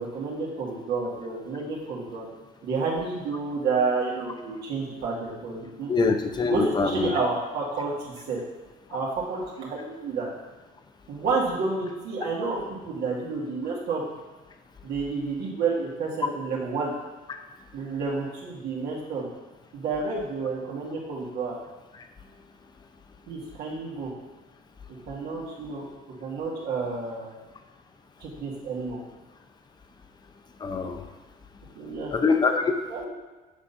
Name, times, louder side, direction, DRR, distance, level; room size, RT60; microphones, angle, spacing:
voice 1, 0.0-2.3 2.6-6.1 6.5-8.4 8.9-10.3 11.1-14.0 14.8-16.9 17.7-19.3 19.7-21.6 23.3-24.1 25.1-25.8 26.2-27.3 28.2-29.0 31.8-32.1 32.9-33.1, right 4 dB, 70° right, -5 dB, 1.9 m, -30 dB
voice 2, 5.9-7.1 30.6-31.0 32.1-32.7, left 4 dB, 25° left, 6 dB, 0.7 m, -24 dB
7.9 x 4.1 x 5.5 m, 1.2 s
cardioid pair, 110°, 17 cm